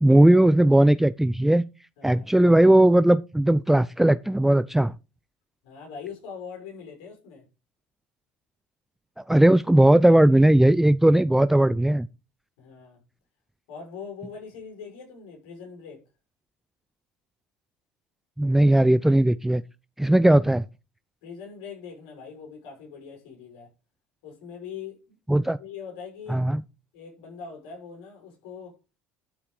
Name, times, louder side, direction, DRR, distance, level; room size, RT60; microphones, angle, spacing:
voice 1, 0.0-1.6 2.0-4.9 9.3-12.1 18.4-19.6 20.0-20.6 25.3-25.6 26.3-26.6, right 1 dB, 5° right, 0.5 m, -18 dB
voice 2, 5.6-7.5 12.6-13.0 13.7-16.0 21.2-23.7 24.2-25.2 25.6-26.4 26.9-28.8, left 6 dB, 75° left, 6.5 m, -41 dB
12.0 x 5.7 x 4.9 m
supercardioid pair, 85°, 6 cm